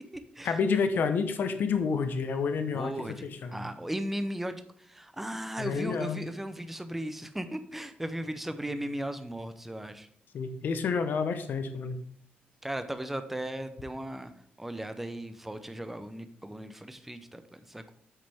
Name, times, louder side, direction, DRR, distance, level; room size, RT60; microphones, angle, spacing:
voice 1, 0.4-3.7 5.6-6.2 10.3-12.0, left 5 dB, 60° left, 8 dB, 0.9 m, -29 dB
voice 2, 2.7-10.1 12.6-14.3 14.6-17.9, right 1 dB, 5° right, 10 dB, 0.6 m, -37 dB
8.3 x 6.4 x 3.5 m, 0.63 s
wide cardioid pair, 150°, 4 cm